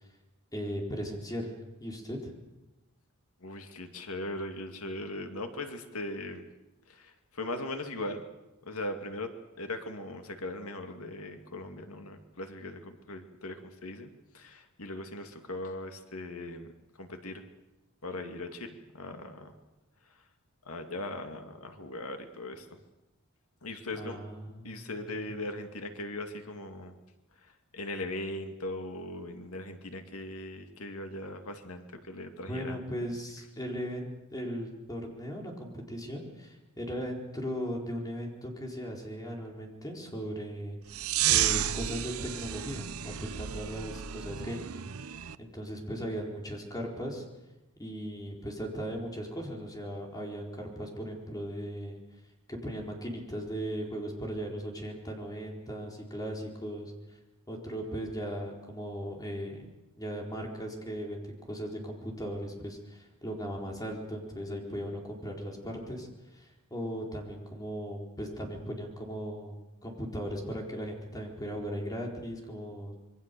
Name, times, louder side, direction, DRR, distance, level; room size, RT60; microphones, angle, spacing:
voice 1, 0.5-1.5 1.8-2.3 23.9-25.3 32.4-44.8 45.4-47.2 47.8-52.0 52.5-56.9 57.5-59.7 60.0-72.9, equal, 15° left, 0 dB, 4.3 m, -38 dB
voice 2, 3.4-6.4 6.9-8.2 8.6-9.3 9.6-16.7 17.0-17.5 18.0-19.5 20.7-22.8 23.6-24.2 24.6-26.9 27.4-32.8, left 1 dB, 80° left, 5 dB, 2.3 m, -39 dB
sound 1, 40.9-45.4, right 11 dB, 75° right, 0.7 m, -31 dB
26.5 x 22.5 x 6.9 m, 1.0 s
head